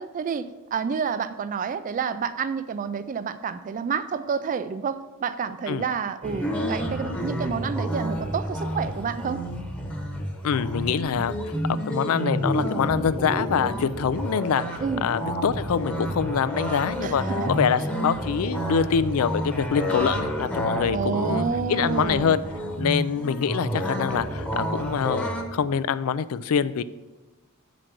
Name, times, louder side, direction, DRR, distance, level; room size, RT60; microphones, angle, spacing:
voice 1, 0.0-9.4 14.8-15.0 17.0-17.5 20.9-22.4, right 6 dB, 35° right, 12 dB, 0.3 m, -29 dB
sound 1, 6.2-25.4, equal, 5° left, 1.0 m, -29 dB
voice 2, 10.4-11.3 11.7-22.4 22.8-26.8, left 7 dB, 70° left, 15 dB, 0.4 m, -25 dB
7.6 x 5.1 x 5.9 m, 1.2 s
head